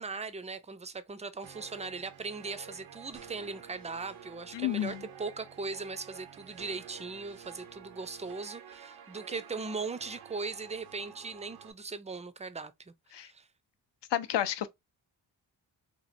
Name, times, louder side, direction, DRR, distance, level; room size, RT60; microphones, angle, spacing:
voice 1, 0.0-13.5, right 4 dB, 15° right, 0.4 m, -39 dB
sound 1, 1.4-11.7, right 8 dB, 90° right, 0.6 m, -50 dB
voice 2, 4.5-5.0 13.1-13.3 14.1-14.7, left 11 dB, 60° left, 0.6 m, -30 dB
3.0 x 2.5 x 2.5 m
cardioid pair, 55°, 47 cm